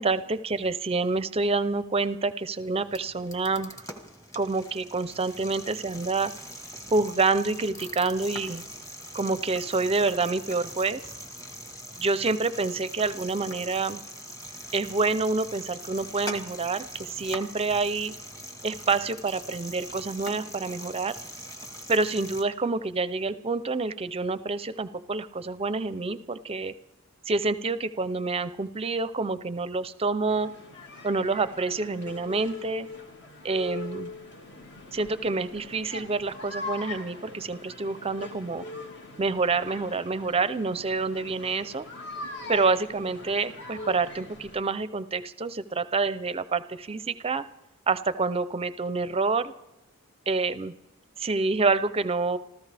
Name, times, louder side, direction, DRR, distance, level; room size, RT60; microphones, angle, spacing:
voice 1, 0.0-3.7 4.3-6.3 6.9-8.6 9.1-11.0 12.0-14.0 14.7-18.1 18.6-21.2 21.9-26.7 27.3-30.5 31.0-32.9 33.4-34.1 34.9-38.6 39.2-41.9 42.5-47.4 47.9-49.5 50.3-50.7 51.2-52.4, right 3 dB, 25° right, 14 dB, 0.5 m, -27 dB
sound 1, 2.6-22.4, equal, 15° left, 1.3 m, -42 dB
sound 2, 30.3-44.6, left 2 dB, 55° left, 1.8 m, -41 dB
26.0 x 14.5 x 3.4 m, 0.93 s
head